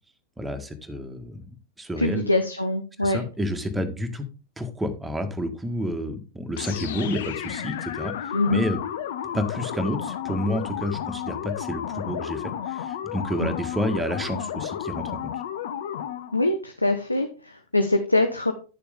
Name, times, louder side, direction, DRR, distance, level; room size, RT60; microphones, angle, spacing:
voice 1, 0.4-2.2 3.0-4.2 4.6-8.8 9.3-15.1, equal, 10° right, 6 dB, 1.6 m, -30 dB
voice 2, 2.0-3.2 8.3-8.6 13.4-13.5 16.3-18.5, left 2 dB, 85° left, 7 dB, 0.8 m, -23 dB
sound 1, 6.6-16.4, left 10 dB, 60° left, 1.0 m, -32 dB
10.5 x 6.9 x 3.6 m, 0.34 s
figure-of-eight pair, 90°, 0 cm